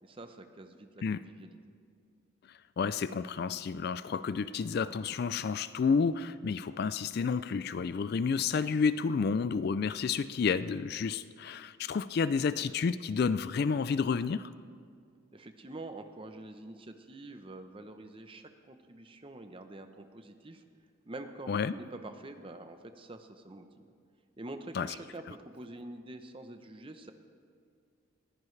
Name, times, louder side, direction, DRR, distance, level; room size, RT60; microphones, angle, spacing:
voice 1, 0.0-1.6 15.3-20.6 21.0-23.9 24.4-27.1, right 2 dB, 25° right, 7 dB, 0.8 m, -46 dB
voice 2, 2.8-14.5 21.5-21.7 24.7-24.9, left 5 dB, 50° left, 15 dB, 0.3 m, -30 dB
20.5 x 15.5 x 3.3 m, 2.2 s
head